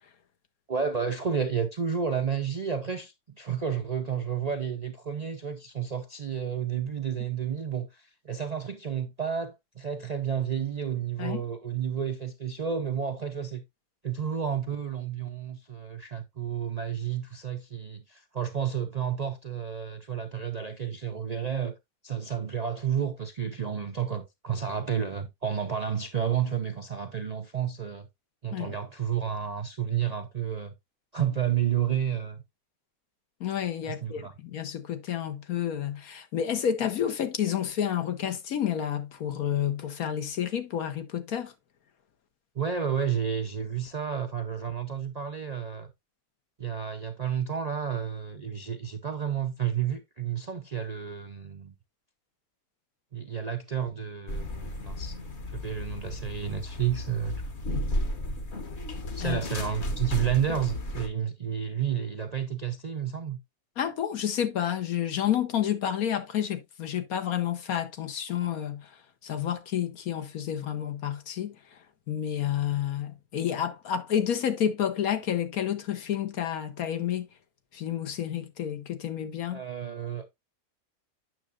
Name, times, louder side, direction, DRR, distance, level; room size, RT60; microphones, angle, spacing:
voice 1, 0.7-13.6 14.0-21.7 22.0-28.1 28.4-30.7 31.1-32.4 33.9-34.3 42.5-45.9 46.6-51.7 53.1-55.2 55.5-57.4 59.2-63.4 79.5-80.3, right 8 dB, 50° right, 0.4 m, -31 dB
voice 2, 33.4-41.5 59.2-59.4 63.8-68.9 69.2-71.8 72.1-77.3 77.7-79.6, left 9 dB, 80° left, 1.5 m, -30 dB
sound 1, 54.3-61.1, left 1 dB, 50° left, 1.4 m, -34 dB
8.9 x 6.3 x 2.5 m
omnidirectional pair, 1.5 m